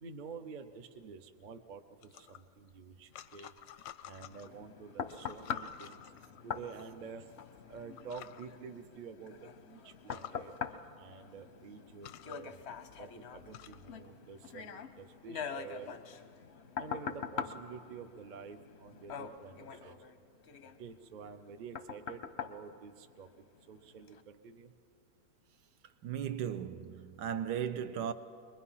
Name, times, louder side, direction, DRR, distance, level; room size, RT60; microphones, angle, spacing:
voice 1, 0.0-3.5 4.0-6.0 6.4-7.3 7.7-9.4 9.6-10.5 11.0-12.5 13.0-15.9 16.8-20.1 20.8-23.3 23.7-24.7, right 5 dB, 55° right, 0.5 m, -49 dB
sound 1, 2.0-4.6 5.0-6.9 7.6-7.7 8.0-8.5 9.0-9.1 9.4-9.5 9.9-10.4 11.3-11.4 11.9-14.0, left 12 dB, 90° left, 1.4 m, -51 dB
sound 2, 4.3-23.6 24.1-24.2, left 6 dB, 55° left, 0.7 m, -44 dB
voice 2, 26.0-28.1, right 8 dB, 75° right, 1.3 m, -36 dB
23.5 x 21.0 x 5.7 m
omnidirectional pair, 1.9 m